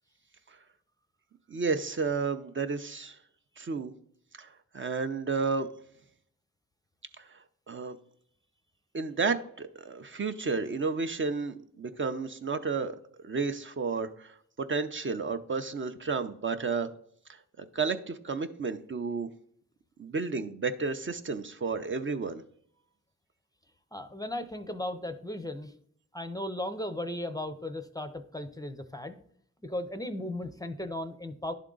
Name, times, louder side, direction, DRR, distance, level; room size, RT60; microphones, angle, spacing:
voice 1, 1.5-3.2 3.6-3.9 4.4-5.7 7.2-7.4 7.7-8.0 8.9-13.0 13.2-16.9 17.3-19.3 20.0-22.4, right 4 dB, 40° right, 9 dB, 0.5 m, -32 dB
voice 2, 23.9-25.7 26.1-29.2 29.6-31.5, left 1 dB, 10° left, 9 dB, 0.5 m, -36 dB
11.0 x 3.7 x 3.7 m, 0.65 s
cardioid pair, 80°, 31 cm